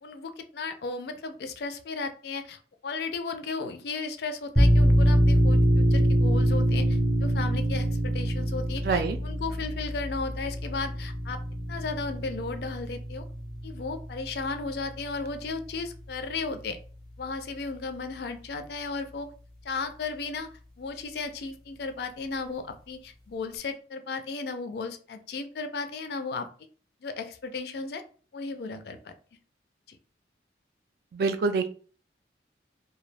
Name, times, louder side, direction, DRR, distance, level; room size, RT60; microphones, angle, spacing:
voice 1, 0.0-11.4 11.7-13.2 13.6-16.8 17.2-19.3 19.6-20.5 20.8-26.5 27.0-28.0 28.3-29.1 29.9-30.0, left 4 dB, 60° left, 8 dB, 0.3 m, -35 dB
sound 1, 4.6-15.9, equal, 5° left, 0.6 m, -25 dB
voice 2, 8.8-9.2 31.1-31.7, right 4 dB, 55° right, 8 dB, 0.3 m, -25 dB
2.2 x 2.0 x 3.2 m, 0.40 s
head